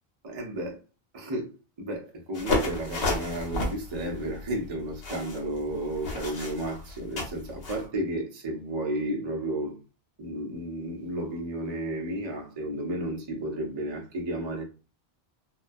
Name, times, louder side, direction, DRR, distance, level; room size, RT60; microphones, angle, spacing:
voice 1, 0.2-0.8 1.1-9.7 10.2-14.6, right 1 dB, 35° right, 0.5 m, -33 dB
sound 1, 2.3-7.8, left 2 dB, 70° left, 1.0 m, -32 dB
2.2 x 2.2 x 2.5 m
omnidirectional pair, 1.1 m